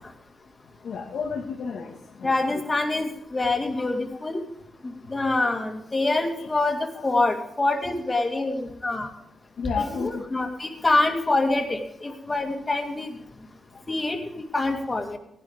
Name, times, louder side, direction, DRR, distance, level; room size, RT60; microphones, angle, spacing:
voice 1, 0.8-1.9 2.2-2.6 6.4-6.5 9.6-10.2, left 5 dB, 75° left, 0 dB, 1.9 m, -31 dB
voice 2, 2.2-4.4 4.8-9.1 9.8-13.1 13.9-15.2, left 2 dB, 25° left, 3 dB, 2.3 m, -25 dB
17.0 x 11.0 x 3.6 m, 0.82 s
cardioid pair, 105°, 0 cm